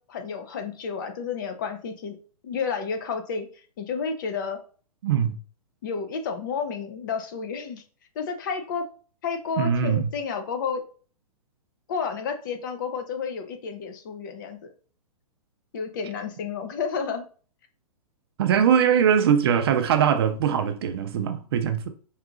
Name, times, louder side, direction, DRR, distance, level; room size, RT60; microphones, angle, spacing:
voice 1, 0.1-2.2 2.4-3.5 3.8-4.6 5.8-7.8 8.2-8.8 9.2-10.8 11.9-14.7 15.7-17.2, left 5 dB, 35° left, 0.4 m, -31 dB
voice 2, 5.0-5.4 9.6-10.1 18.4-21.9, right 8 dB, 40° right, 0.5 m, -21 dB
4.7 x 2.9 x 2.5 m
hypercardioid pair, 160°, 19 cm